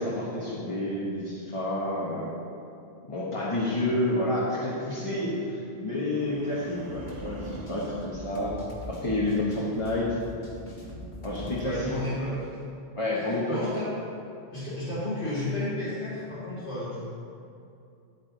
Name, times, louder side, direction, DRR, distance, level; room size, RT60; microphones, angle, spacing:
voice 1, 0.0-2.3 3.1-8.6 8.9-10.2 11.2-11.9 12.9-13.6, left 1 dB, 30° left, -6 dB, 1.2 m, -29 dB
sound 1, 5.9-9.3 9.7-10.1, right 3 dB, 85° right, 1.1 m, -44 dB
sound 2, 6.9-11.8, equal, 65° left, 1.7 m, -42 dB
voice 2, 11.6-12.5 13.5-13.9 14.5-17.1, left 1 dB, 85° left, -13 dB, 2.9 m, -32 dB
9.9 x 8.9 x 3.9 m, 2.6 s
omnidirectional pair, 1.1 m